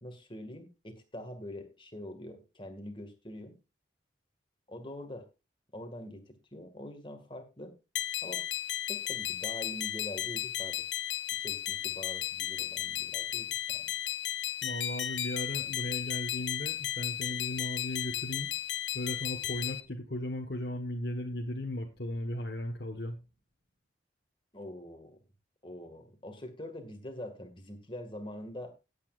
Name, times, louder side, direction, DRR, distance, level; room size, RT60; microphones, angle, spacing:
voice 1, 0.0-3.6 4.7-5.3 5.7-7.7 8.2-8.5 8.9-10.8 11.4-13.9 24.5-25.2 25.6-28.7, left 1 dB, 25° left, 5 dB, 2.0 m, -44 dB
sound 1, 8.0-19.8, left 12 dB, 80° left, 0.8 m, -34 dB
voice 2, 14.6-18.5 18.9-23.2, left 1 dB, 60° left, 1 dB, 1.4 m, -36 dB
16.5 x 8.6 x 2.5 m, 0.27 s
head